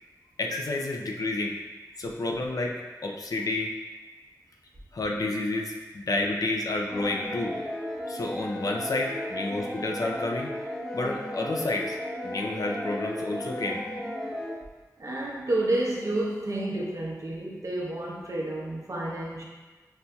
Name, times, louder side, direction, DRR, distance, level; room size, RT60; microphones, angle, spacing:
voice 1, 0.4-1.5 2.0-3.7 4.9-7.5 8.1-10.5 10.9-12.0 12.2-13.8, left 2 dB, 70° left, 0 dB, 0.5 m, -30 dB
sound 1, 6.9-14.6, left 1 dB, 10° left, 0.6 m, -35 dB
voice 2, 15.0-19.4, right 1 dB, 55° right, -3 dB, 0.8 m, -30 dB
5.9 x 2.6 x 2.3 m, 1.3 s
wide cardioid pair, 70°, 6 cm